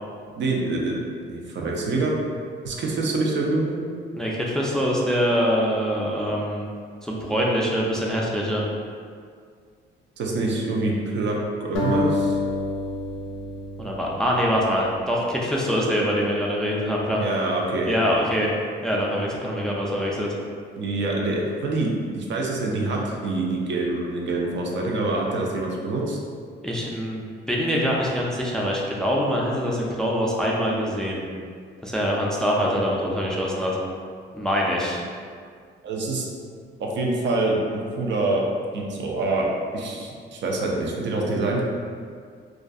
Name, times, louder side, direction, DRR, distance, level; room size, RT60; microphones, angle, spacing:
voice 1, 0.4-2.1 2.6-3.8 10.2-12.4 17.1-17.9 20.8-26.2 35.8-36.3 36.8-38.5 38.7-41.6, right 2 dB, 65° right, -1 dB, 0.5 m, -26 dB
voice 2, 4.2-6.6 7.0-8.6 13.8-17.2 17.8-18.5 18.8-20.4 26.6-31.2 31.8-33.8 34.3-35.0, equal, 5° left, -3 dB, 0.3 m, -24 dB
sound 1, 11.7-15.0, left 2 dB, 90° left, 0.4 m, -28 dB
2.3 x 2.2 x 2.5 m, 2.1 s
cardioid pair, 90°, 20 cm